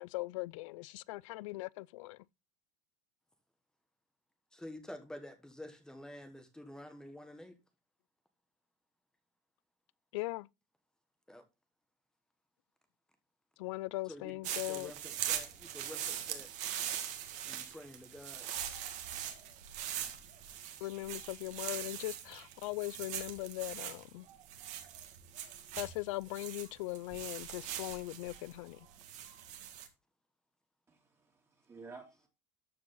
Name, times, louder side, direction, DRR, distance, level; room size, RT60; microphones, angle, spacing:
voice 1, 0.0-2.2 10.1-10.5 13.6-14.9 20.8-24.3 25.8-28.8, left 21 dB, 80° left, 0.5 m, -40 dB
voice 2, 4.5-7.5 11.3-11.4 14.1-16.5 17.4-18.7, left 1 dB, 5° left, 1.3 m, -49 dB
sound 1, 14.4-29.9, right 10 dB, 45° right, 2.0 m, -42 dB
voice 3, 30.9-32.3, right 4 dB, 15° right, 2.6 m, -53 dB
13.5 x 4.8 x 3.9 m
supercardioid pair, 155°, 16 cm